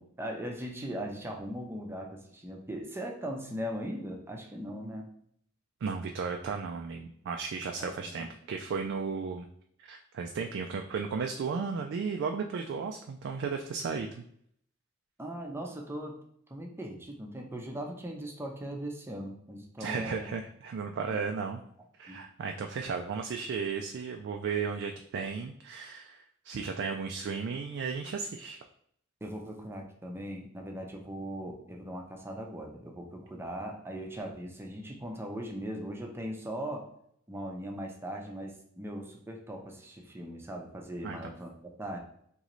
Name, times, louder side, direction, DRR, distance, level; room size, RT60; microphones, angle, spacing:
voice 1, 0.0-5.1 7.8-8.3 15.2-16.2 16.5-20.3 22.1-22.2 29.2-36.9 37.3-41.5 41.8-42.0, equal, 10° right, 1 dB, 0.6 m, -39 dB
voice 2, 5.8-9.5 9.8-14.2 19.8-21.6 22.0-28.6 41.0-41.2, right 5 dB, 60° right, 4 dB, 0.3 m, -34 dB
3.8 x 3.0 x 3.0 m, 0.67 s
head